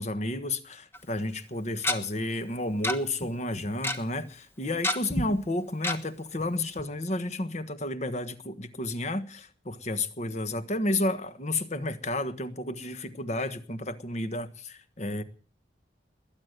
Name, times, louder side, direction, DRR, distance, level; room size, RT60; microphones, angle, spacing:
voice 1, 0.0-15.2, left 1 dB, 40° left, 1.3 m, -31 dB
Tick-tock, 0.9-1.0 1.8-2.0 2.8-3.0 3.2-3.3 3.6-4.0 4.8-5.2 5.8-6.0 6.4-6.5 6.8-6.9, left 1 dB, 15° left, 1.4 m, -27 dB
21.0 x 9.3 x 6.7 m
head